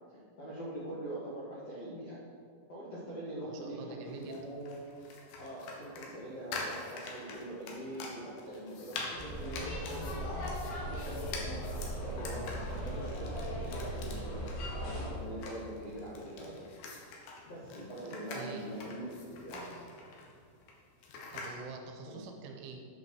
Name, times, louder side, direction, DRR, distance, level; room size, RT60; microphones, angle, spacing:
voice 1, 0.1-2.2 2.7-4.8 5.4-10.4 10.8-14.6 14.9-16.6 17.4-19.7 22.0-22.2, right 1 dB, 90° left, -7 dB, 1.4 m, -43 dB
voice 2, 3.4-4.5 18.3-18.7 21.3-22.9, right 4 dB, 85° right, 3 dB, 3.1 m, -46 dB
sound 1, 4.1-21.6, left 3 dB, 70° left, 2.3 m, -46 dB
sound 2, 9.2-15.1, equal, 55° left, 3.4 m, -38 dB
9.4 x 5.4 x 6.1 m, 2.2 s
omnidirectional pair, 5.8 m